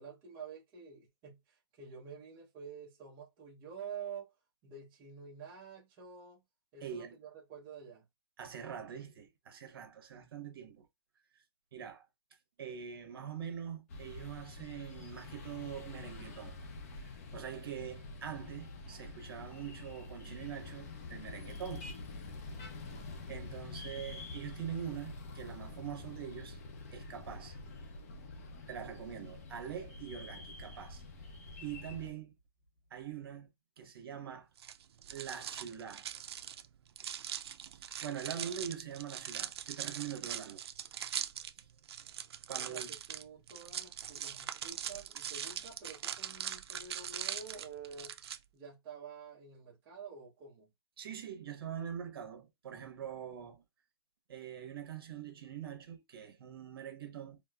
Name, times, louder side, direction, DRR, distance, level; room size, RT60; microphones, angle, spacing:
voice 1, 0.0-4.3 4.6-6.4 6.7-8.1 42.5-48.2 48.5-50.7, right 6 dB, 20° right, 0.7 m, -49 dB
voice 2, 6.8-7.1 8.4-10.9 11.3-11.4 11.7-12.1 12.6-16.6 17.0-21.9 23.3-26.6 26.9-27.6 28.7-31.0 31.6-32.3 32.9-33.5 33.8-34.5 35.1-36.1 37.7-40.6 41.5-41.7 42.5-42.9 51.0-53.6 54.3-57.4, right 8 dB, 65° right, 1.1 m, -44 dB
sound 1, 13.9-32.1, left 3 dB, 35° left, 0.6 m, -47 dB
sound 2, 34.6-48.4, right 9 dB, 80° right, 0.4 m, -42 dB
4.2 x 2.0 x 2.3 m
hypercardioid pair, 175°, 13 cm